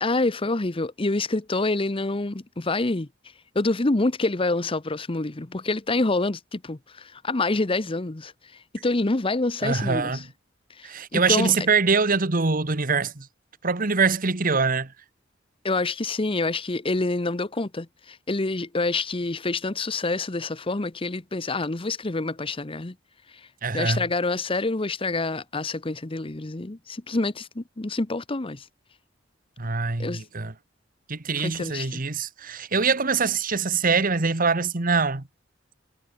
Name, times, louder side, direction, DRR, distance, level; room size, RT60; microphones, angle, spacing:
voice 1, 0.0-3.1 3.5-8.3 8.8-10.2 10.8-11.5 15.6-22.9 23.3-23.5 23.7-28.7 30.0-30.2 31.4-32.0, left 2 dB, 30° left, 0.9 m, -27 dB
voice 2, 9.6-10.2 10.8-13.3 13.6-14.9 23.6-24.0 29.6-30.5 31.1-35.2, right 4 dB, 45° right, 1.5 m, -24 dB
head